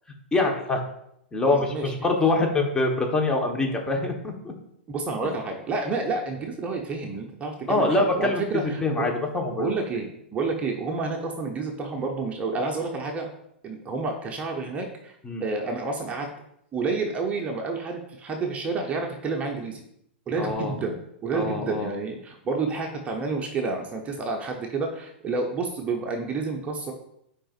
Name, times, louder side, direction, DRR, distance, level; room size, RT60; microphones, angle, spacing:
voice 1, 0.3-0.8 1.3-4.5 7.7-9.8 15.2-15.4 20.4-20.7 21.3-21.9, left 2 dB, 10° left, 1 dB, 1.2 m, -24 dB
voice 2, 1.5-1.9 4.9-9.1 9.6-13.3 13.6-15.1 15.4-16.3 16.7-19.8 20.3-26.9, right 3 dB, 20° right, 2 dB, 0.9 m, -29 dB
8.8 x 5.0 x 2.5 m, 0.76 s
hypercardioid pair, 105°, 6 cm